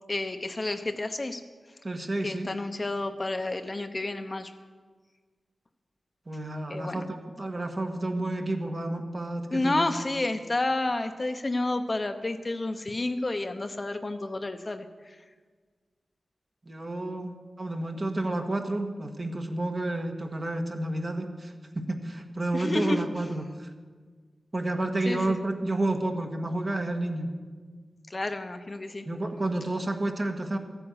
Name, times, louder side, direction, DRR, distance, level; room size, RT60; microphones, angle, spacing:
voice 1, 0.1-1.4 2.2-4.5 6.7-7.0 9.5-14.9 22.5-23.0 25.1-25.3 28.1-29.0, left 2 dB, 35° left, 7 dB, 0.8 m, -30 dB
voice 2, 1.8-2.5 6.3-9.9 16.6-23.7 24.5-27.3 29.0-30.6, right 2 dB, 40° right, 4 dB, 1.5 m, -30 dB
14.0 x 8.9 x 7.8 m, 1.5 s
wide cardioid pair, 75°, 0 cm